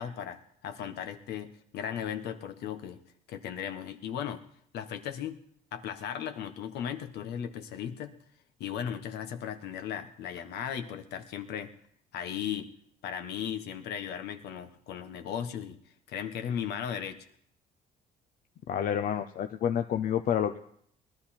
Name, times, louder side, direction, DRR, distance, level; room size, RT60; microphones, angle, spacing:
voice 1, 0.0-3.0 3.3-4.4 4.7-5.4 5.7-8.1 8.6-11.7 12.1-12.7 13.0-15.8 16.1-17.2, left 9 dB, 75° left, 7 dB, 1.4 m, -36 dB
voice 2, 18.7-20.6, left 9 dB, 60° left, 7 dB, 0.8 m, -29 dB
20.0 x 12.5 x 4.4 m, 0.66 s
cardioid pair, 110°, 17 cm